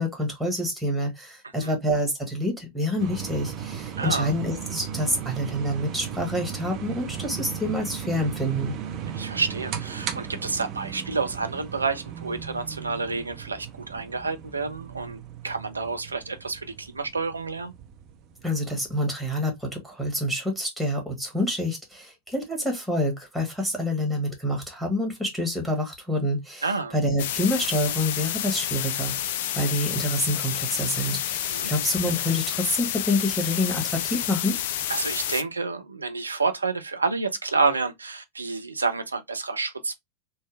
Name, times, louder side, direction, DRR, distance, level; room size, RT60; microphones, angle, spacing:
voice 1, 0.0-8.7 18.4-26.6 26.9-29.1 29.5-34.5, left 1 dB, ahead, 1.4 m, -27 dB
sound 1, 3.0-19.0, right 8 dB, 35° right, 0.6 m, -36 dB
voice 2, 4.0-4.3 9.1-17.7 26.6-26.9 31.5-31.7 34.9-39.9, right 4 dB, 80° right, 0.5 m, -29 dB
sound 2, 27.2-35.4, left 11 dB, 55° left, 0.3 m, -29 dB
3.4 x 2.1 x 3.2 m
figure-of-eight pair, 90°, 0 cm